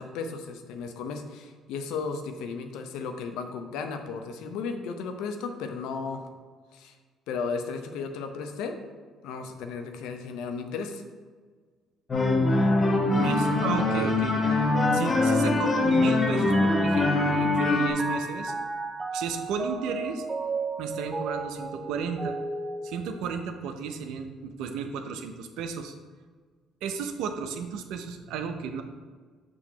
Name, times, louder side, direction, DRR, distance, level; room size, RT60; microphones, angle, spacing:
voice 1, 0.0-6.2 6.7-6.9 7.3-8.8 9.2-11.0, left 5 dB, 80° left, 6 dB, 0.6 m, -34 dB
sound 1, 12.1-17.9, left 2 dB, 40° left, 1.0 m, -23 dB
voice 2, 13.1-14.3 14.9-18.5 19.1-20.2 20.8-22.3 22.8-25.9 26.8-28.8, right 6 dB, 75° right, 7 dB, 0.6 m, -33 dB
Mallet percussion, 15.9-23.6, right 3 dB, 25° right, 0.6 m, -34 dB
6.2 x 3.0 x 5.6 m, 1.5 s
supercardioid pair, 70°, 0 cm